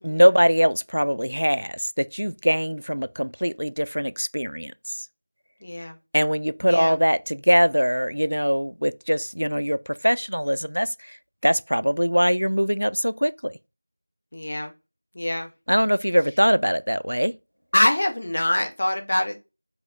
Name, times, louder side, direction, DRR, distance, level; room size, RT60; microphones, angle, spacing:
voice 1, 0.0-5.1 6.1-11.2 11.4-13.6 15.7-17.3, equal, 90° right, 0.3 m, -22 dB
voice 2, 5.6-6.0 6.6-7.0 14.3-14.7 15.1-15.5 17.7-19.4, left 1 dB, 25° left, 0.5 m, -24 dB
4.8 x 2.0 x 3.6 m
figure-of-eight pair, 175°, 0 cm